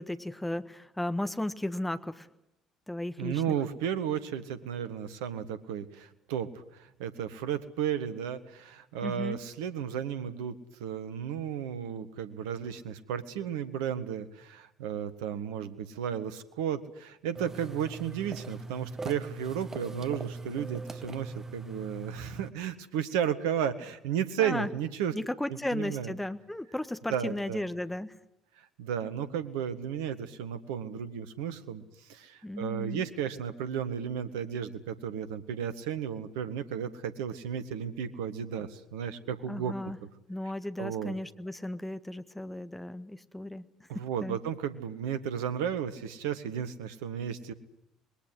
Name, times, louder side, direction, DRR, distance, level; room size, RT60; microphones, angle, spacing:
voice 1, 0.0-2.3 2.9-3.4 9.0-9.4 24.4-24.7 25.1-28.1 32.4-33.0 39.5-40.0 40.3-43.6 43.9-44.4, left 1 dB, 5° left, 11 dB, 1.5 m, -35 dB
voice 2, 3.2-25.1 25.5-26.1 27.1-27.6 28.6-31.8 32.1-39.7 40.8-41.1 43.9-47.5, right 8 dB, 65° right, 12 dB, 1.6 m, -34 dB
sound 1, 17.3-22.5, right 3 dB, 20° right, 1.6 m, -41 dB
25.5 x 21.5 x 7.9 m, 0.86 s
figure-of-eight pair, 55°, 2 cm